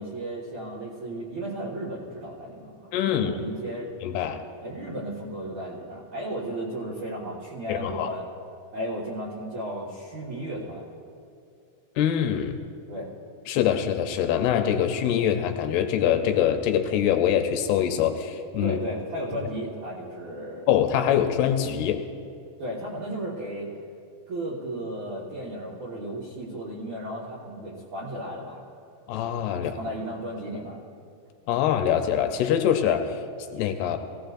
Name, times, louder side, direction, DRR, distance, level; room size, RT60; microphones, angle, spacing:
voice 1, 0.0-3.9 4.6-8.2 8.7-10.8 12.9-13.1 18.6-20.7 22.6-23.8 24.3-28.6 29.7-30.8, right 1 dB, 55° right, -7 dB, 2.3 m, -34 dB
voice 2, 2.9-3.4 4.0-4.4 7.7-8.1 12.0-12.6 13.5-18.8 20.7-22.0 29.1-29.7 31.5-33.2 33.5-34.0, left 9 dB, 80° left, 6 dB, 2.5 m, -24 dB
21.0 x 17.0 x 2.6 m, 2.4 s
omnidirectional pair, 5.0 m